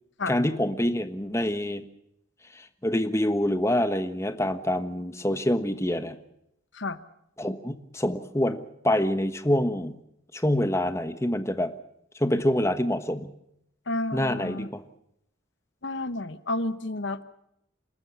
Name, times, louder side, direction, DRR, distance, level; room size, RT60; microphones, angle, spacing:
voice 1, 0.3-1.8 2.5-6.2 7.4-9.9 10.3-11.7 12.2-13.3 14.1-14.8, left 1 dB, 15° left, 10 dB, 1.3 m, -26 dB
voice 2, 13.9-14.7 15.8-17.2, left 2 dB, 65° left, 13 dB, 1.1 m, -31 dB
29.0 x 13.0 x 8.4 m, 0.76 s
head